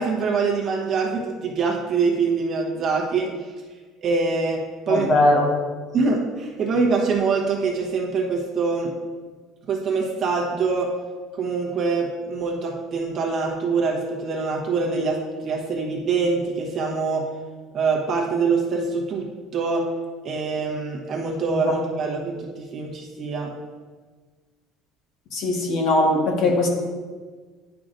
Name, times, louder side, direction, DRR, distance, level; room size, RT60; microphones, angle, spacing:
voice 1, 0.0-3.3 4.0-4.6 4.9-5.1 5.9-8.9 9.7-10.9 11.3-15.2 15.4-17.2 17.7-19.2 19.5-19.8 20.2-23.5, right 4 dB, 35° right, -1 dB, 1.0 m, -24 dB
voice 2, 4.9-5.5 21.6-21.7 25.3-26.7, left 2 dB, 50° left, 0 dB, 1.4 m, -20 dB
9.9 x 5.8 x 2.6 m, 1.5 s
cardioid pair, 165°, 0 cm